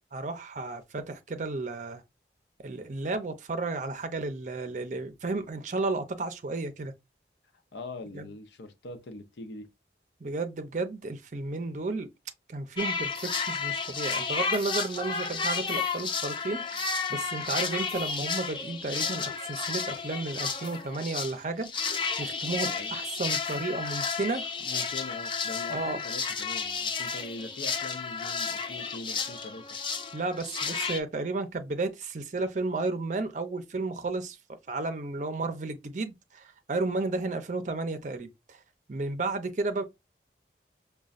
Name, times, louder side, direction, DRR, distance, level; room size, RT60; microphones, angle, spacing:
voice 1, 0.1-2.0 2.6-6.9 8.1-8.3 10.2-12.1 12.5-24.4 25.7-26.0 30.1-34.4 34.7-38.6 38.9-39.8, right 3 dB, 45° right, 0.5 m, -33 dB
voice 2, 7.7-9.7 22.6-22.9 24.6-29.6, left 2 dB, 80° left, 0.6 m, -42 dB
sound 1, 12.8-21.4 21.6-31.0, left 5 dB, 30° left, 0.3 m, -32 dB
sound 2, 13.1-13.6 14.5-15.0 15.7-16.2 16.8-17.2 17.9-18.4 20.6-20.9 22.2-22.3 23.0-23.1 23.4-23.7 25.5-26.3 27.1-27.9 28.4-29.2, equal, 10° left, 1.4 m, -52 dB
5.1 x 2.2 x 2.4 m
head